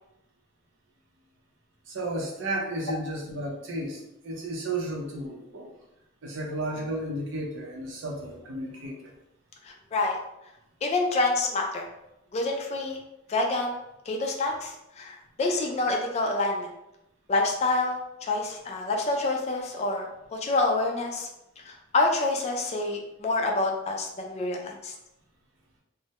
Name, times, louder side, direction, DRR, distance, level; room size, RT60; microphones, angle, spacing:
voice 1, 1.9-5.7 6.2-9.1, right 1 dB, 65° right, -1 dB, 0.6 m, -33 dB
voice 2, 9.6-10.2 10.8-11.9 12.3-13.0 13.3-13.8 14.1-16.7 17.3-21.3 21.6-24.9, left 2 dB, 30° left, 2 dB, 0.3 m, -27 dB
2.1 x 2.1 x 2.8 m, 0.88 s
head